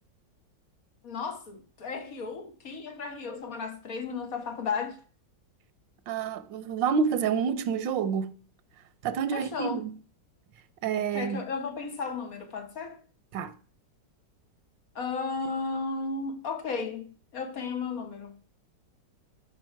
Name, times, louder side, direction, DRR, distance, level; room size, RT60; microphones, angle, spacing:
voice 1, 1.0-5.0 9.3-9.8 11.1-13.0 14.9-18.4, left 4 dB, 50° left, 1.7 m, -34 dB
voice 2, 6.1-8.4 9.0-9.9 10.8-11.4 13.3-13.5, right 6 dB, 90° right, 1.5 m, -28 dB
14.0 x 5.3 x 4.5 m
omnidirectional pair, 1.9 m